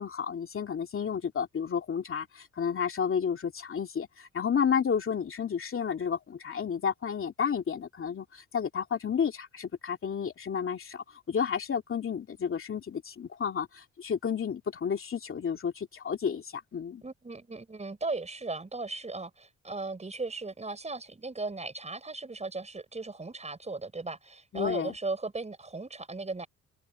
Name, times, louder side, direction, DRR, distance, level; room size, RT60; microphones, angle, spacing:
voice 1, 0.0-17.0 24.5-24.9, left 7 dB, 45° left, 2.8 m, -31 dB
voice 2, 17.0-26.5, right 3 dB, 20° right, 5.5 m, -37 dB
cardioid pair, 90°, 30 cm